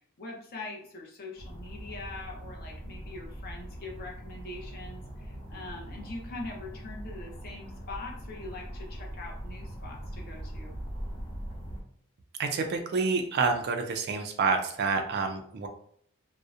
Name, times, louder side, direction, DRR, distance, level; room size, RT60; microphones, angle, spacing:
voice 1, 0.2-10.7, left 2 dB, 45° left, 0 dB, 0.6 m, -43 dB
sound 1, 1.4-11.8, equal, 65° left, 1.1 m, -41 dB
voice 2, 12.4-15.7, right 4 dB, 45° right, 5 dB, 0.3 m, -28 dB
2.6 x 2.0 x 2.4 m, 0.64 s
head